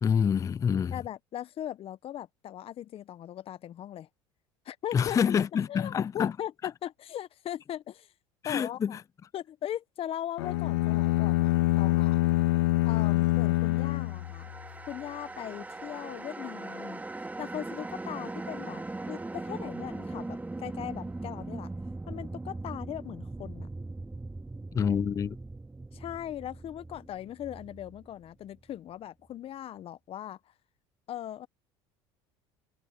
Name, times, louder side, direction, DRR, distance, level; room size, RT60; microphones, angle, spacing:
voice 1, 0.0-0.9 4.9-6.3 8.4-9.0 24.7-25.4, left 7 dB, 25° left, 0.4 m, -27 dB
voice 2, 0.9-4.1 4.6-8.1 8.4-9.0 9.3-12.2 12.8-14.5 14.9-17.0 17.4-21.7 22.1-23.7 25.9-30.4 31.1-31.5, left 11 dB, 45° left, 1.1 m, -39 dB
sound 1, 10.4-14.8, left 19 dB, 85° left, 0.6 m, -26 dB
sound 2, 13.5-28.7, right 2 dB, 10° right, 2.3 m, -40 dB
hypercardioid pair, 80°, 13 cm